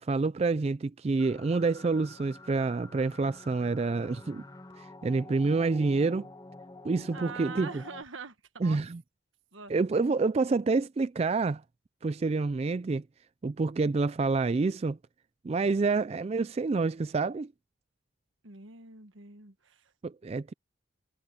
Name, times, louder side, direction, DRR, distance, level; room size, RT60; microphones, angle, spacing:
voice 1, 0.0-4.4 4.8-6.3 6.8-7.7 8.6-9.0 9.7-11.6 12.0-13.0 13.4-15.0 15.4-17.5 20.0-20.5, right 3 dB, 30° right, 0.3 m, -28 dB
sound 1, 1.2-8.0, left 2 dB, 20° left, 1.7 m, -48 dB
voice 2, 7.1-8.8 9.5-9.7 18.4-19.9, right 4 dB, 80° right, 1.5 m, -44 dB
head